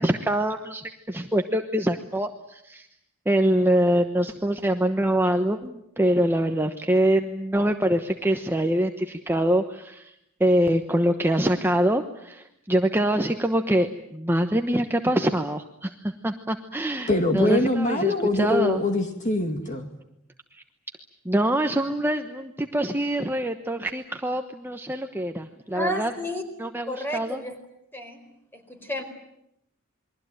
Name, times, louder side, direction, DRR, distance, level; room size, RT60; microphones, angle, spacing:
voice 1, 0.0-2.9 3.3-10.1 10.4-17.1 17.3-18.8 21.2-26.1 26.6-27.4, right 1 dB, 10° right, 5 dB, 1.0 m, -24 dB
voice 2, 17.1-19.9, left 2 dB, 35° left, 5 dB, 2.3 m, -23 dB
voice 3, 25.7-26.4 26.9-27.6 27.9-28.3 28.5-29.0, left 1 dB, 10° left, 7 dB, 4.4 m, -31 dB
28.5 x 22.5 x 9.1 m, 0.79 s
head